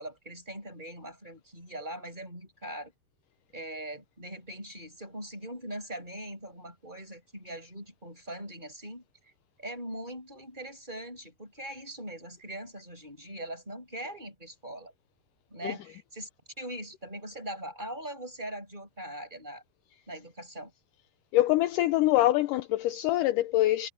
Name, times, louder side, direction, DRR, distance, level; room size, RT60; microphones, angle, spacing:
voice 1, 0.0-2.9 3.5-9.0 9.6-14.9 15.5-16.3 16.6-19.6 20.1-20.7, right 1 dB, 10° right, 7.5 m, -41 dB
voice 2, 21.3-23.9, left 15 dB, 80° left, 1.9 m, -24 dB
omnidirectional pair, 4.4 m